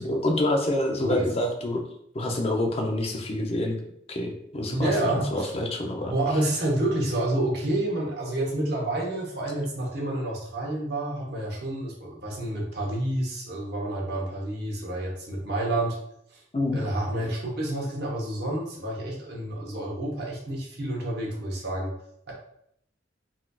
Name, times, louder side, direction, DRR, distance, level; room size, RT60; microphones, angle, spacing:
voice 1, 0.0-1.8 2.1-3.8 4.1-4.9 5.3-6.1 16.5-16.8, left 1 dB, 35° left, 2 dB, 0.5 m, -27 dB
voice 2, 4.7-5.5 6.1-16.0 16.3-16.4 16.7-21.9, right 1 dB, 60° right, -3 dB, 1.0 m, -29 dB
4.0 x 2.7 x 2.3 m, 0.72 s
head